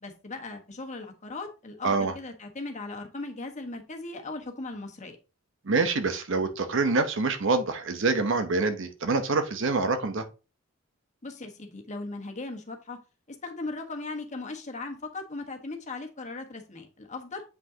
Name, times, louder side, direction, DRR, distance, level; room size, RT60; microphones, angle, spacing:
voice 1, 0.0-5.2 11.2-13.0 13.3-17.4, left 3 dB, 35° left, 1.3 m, -38 dB
voice 2, 1.8-2.1 5.7-10.3, right 3 dB, 65° right, 0.9 m, -26 dB
7.9 x 5.3 x 2.8 m
head